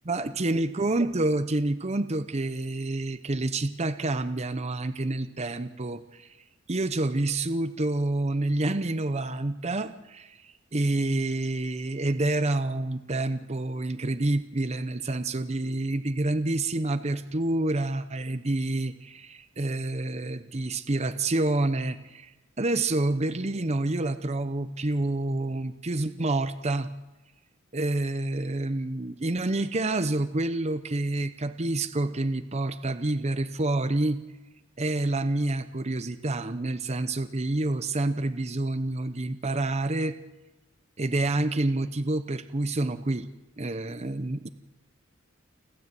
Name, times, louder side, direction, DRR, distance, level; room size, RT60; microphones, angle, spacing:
voice 1, 0.1-6.3 6.7-22.3 22.6-26.9 27.7-34.2 34.8-40.2 41.0-43.3 43.6-44.5, right 2 dB, 30° right, 11 dB, 0.8 m, -28 dB
29.5 x 12.5 x 7.7 m, 1.1 s
head